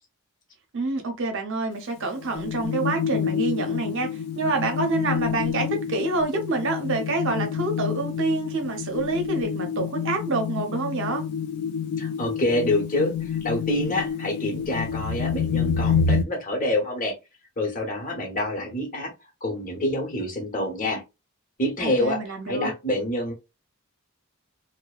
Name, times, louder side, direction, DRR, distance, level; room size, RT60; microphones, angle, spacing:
voice 1, 0.7-11.2 21.8-22.7, right 3 dB, 60° right, 0.7 m, -27 dB
sound 1, 2.0-16.2, left 6 dB, 90° left, 0.3 m, -28 dB
voice 2, 12.0-17.1 17.6-19.1 19.4-21.0 21.6-22.2 22.5-23.3, left 1 dB, 40° left, 0.8 m, -27 dB
2.7 x 2.0 x 2.3 m
head